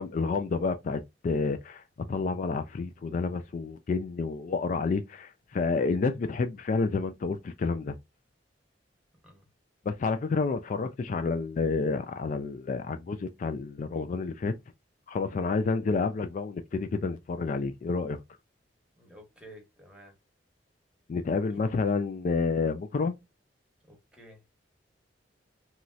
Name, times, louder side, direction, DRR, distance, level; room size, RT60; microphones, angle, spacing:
voice 1, 0.0-1.8 2.1-7.9 9.9-14.5 15.1-18.2 21.1-23.1, left 4 dB, 45° left, 0.3 m, -29 dB
voice 2, 19.0-20.1 23.9-24.4, right 1 dB, 5° right, 1.0 m, -52 dB
3.0 x 2.7 x 2.3 m
head